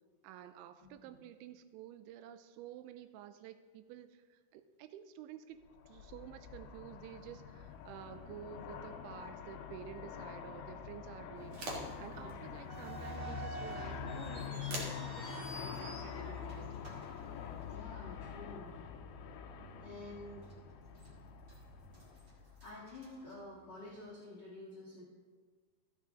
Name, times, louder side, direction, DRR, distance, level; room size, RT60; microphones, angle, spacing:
voice 1, 0.2-5.6 5.9-16.8, right 10 dB, 90° right, 11 dB, 3.0 m, -51 dB
voice 2, 0.8-1.2 12.2-12.3 17.7-18.8 19.8-20.5 22.3-25.0, left 2 dB, 70° left, -7 dB, 1.0 m, -50 dB
Aircraft, 5.7-23.0, left 7 dB, 85° left, 2.1 m, -46 dB
sound 1, 11.4-17.8, right 1 dB, 75° right, 1.2 m, -49 dB
sound 2, 12.7-18.0 18.3-18.4 19.1-19.3 19.8-19.9 20.5-21.1 21.4-23.9, right 3 dB, 45° right, 1.4 m, -50 dB
13.0 x 8.9 x 3.7 m, 1.5 s
omnidirectional pair, 5.3 m